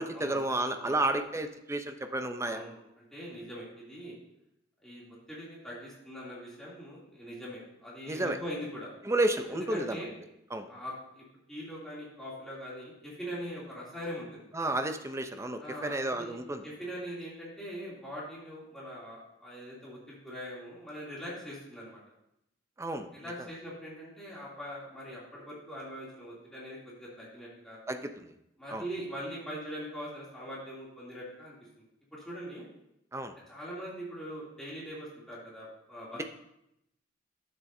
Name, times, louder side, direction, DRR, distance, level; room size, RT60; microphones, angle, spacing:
voice 1, 0.0-2.6 8.1-8.4 9.0-10.0 10.5-10.7 14.5-16.6 22.8-23.1 27.9-28.3 28.7-28.8 33.1-33.4, right 2 dB, 15° right, 7 dB, 0.5 m, -31 dB
voice 2, 2.4-2.8 3.1-4.2 4.8-8.9 9.5-10.1 10.7-14.5 15.6-16.4 16.6-22.0 23.1-27.8 28.6-31.8 32.1-32.6 33.5-36.2, equal, 5° left, -7 dB, 2.7 m, -42 dB
12.0 x 7.4 x 2.7 m, 0.81 s
head